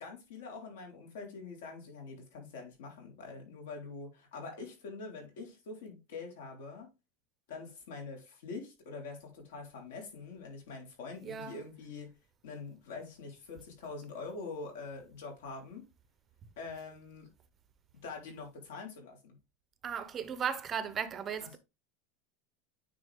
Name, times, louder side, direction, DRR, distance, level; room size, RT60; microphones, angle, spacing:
voice 1, 0.0-6.9 7.5-12.1 12.4-15.9 16.6-17.3 18.0-19.4, left 4 dB, 80° left, 3.8 m, -44 dB
voice 2, 11.2-11.6 19.8-21.6, right 7 dB, 20° right, 0.6 m, -36 dB
9.5 x 4.1 x 3.5 m
supercardioid pair, 180°, 0 cm